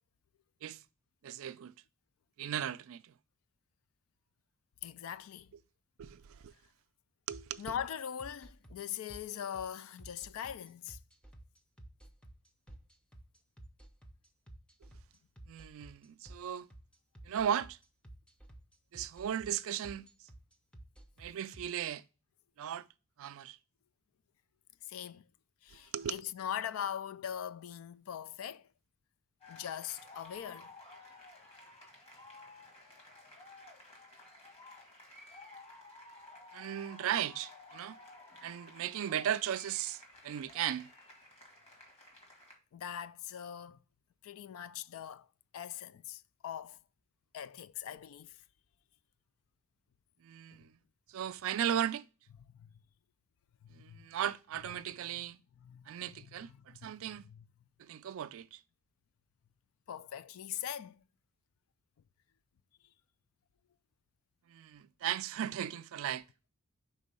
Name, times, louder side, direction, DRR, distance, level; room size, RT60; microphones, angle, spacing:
voice 1, 1.2-1.7 2.4-3.1 6.0-6.5 7.3-7.6 15.5-16.7 17.2-17.8 18.9-20.1 21.2-22.0 22.6-22.9 23.2-23.6 25.9-26.2 36.5-38.0 38.4-40.9 50.2-50.8 51.1-52.0 53.7-55.4 55.9-57.3 57.8-58.6 64.5-66.2, right 10 dB, 65° right, 0.3 m, -36 dB
voice 2, 4.8-5.5 7.6-11.0 24.9-25.2 25.6-28.7 29.5-30.7 42.7-43.8 44.2-45.3 45.5-46.8 47.3-48.4 50.5-50.6 52.5-52.7 53.6-54.1 55.6-55.9 56.2-56.3 56.5-56.9 57.3-57.4 59.9-61.0, left 9 dB, 65° left, 0.3 m, -41 dB
sound 1, 7.3-21.6, right 1 dB, 5° left, 0.6 m, -52 dB
sound 2, 29.4-42.6, left 2 dB, 30° left, 1.4 m, -54 dB
5.2 x 3.8 x 5.3 m
head